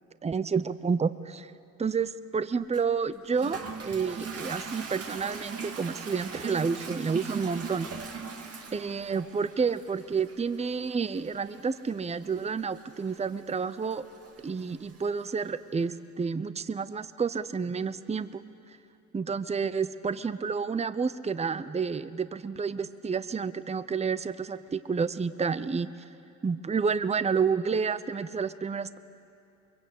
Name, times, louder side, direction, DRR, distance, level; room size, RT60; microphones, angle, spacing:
voice 1, 0.2-1.5 1.8-7.9 8.7-14.0 14.4-18.4 19.1-25.9 26.4-29.0, right 5 dB, 20° right, 14 dB, 0.7 m, -30 dB
Toilet flush, 2.7-15.5, right 5 dB, 50° right, 2.3 m, -41 dB
23.5 x 23.0 x 8.3 m, 2.7 s
cardioid pair, 90°, 30 cm